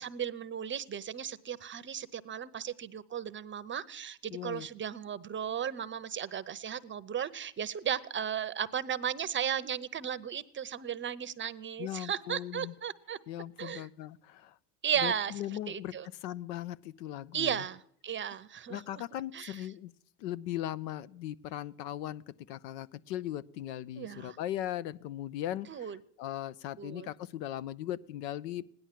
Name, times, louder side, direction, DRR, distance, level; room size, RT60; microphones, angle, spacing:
voice 1, 0.0-13.2 13.6-13.9 14.8-15.3 15.7-16.1 17.3-19.0 19.3-19.7 24.0-24.4 25.7-26.0 26.8-27.1, right 8 dB, 25° right, 15 dB, 0.7 m, -35 dB
voice 2, 4.3-4.7 11.8-12.7 13.3-14.5 15.0-15.9 16.2-17.6 18.7-19.9 20.2-25.9 26.2-28.7, left 12 dB, 75° left, 19 dB, 0.9 m, -38 dB
17.0 x 11.0 x 7.5 m, 0.63 s
supercardioid pair, 105°, 49 cm